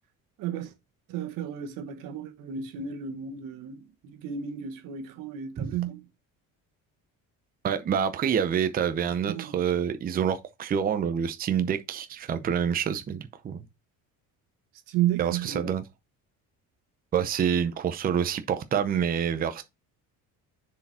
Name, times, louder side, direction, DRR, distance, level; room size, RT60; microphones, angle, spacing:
voice 1, 0.4-0.7 1.1-6.0 9.3-9.6 14.9-15.7, right 9 dB, 80° right, 1.6 m, -32 dB
voice 2, 7.6-13.6 15.2-15.8 17.1-19.6, right 8 dB, 25° right, 0.6 m, -27 dB
6.9 x 4.8 x 4.2 m
cardioid pair, 155°, 33 cm